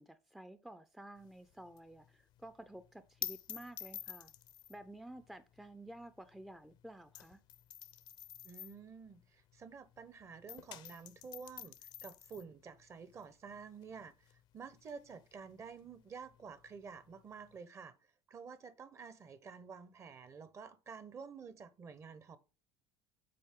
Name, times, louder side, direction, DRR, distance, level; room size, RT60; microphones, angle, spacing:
voice 1, 0.0-4.3 4.7-7.4, right 1 dB, ahead, 0.5 m, -52 dB
sound 1, 1.2-10.1 10.3-17.6, left 12 dB, 55° left, 0.6 m, -50 dB
voice 2, 8.4-18.0 18.3-22.4, right 5 dB, 30° right, 0.8 m, -50 dB
7.7 x 4.1 x 3.7 m
supercardioid pair, 105°, 9 cm